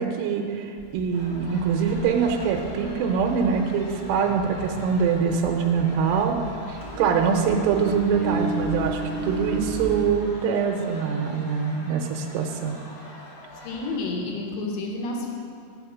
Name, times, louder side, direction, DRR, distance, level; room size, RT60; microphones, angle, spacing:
voice 1, 0.0-6.4 6.7-12.8, right 6 dB, 85° right, 2 dB, 2.8 m, -24 dB
Engine, 0.8-10.0, equal, 5° left, 1.1 m, -36 dB
sound 1, 1.1-14.0, equal, 35° left, 1.3 m, -43 dB
voice 2, 13.6-15.3, left 2 dB, 70° left, 0 dB, 2.3 m, -30 dB
9.3 x 5.6 x 7.1 m, 2.3 s
omnidirectional pair, 5.0 m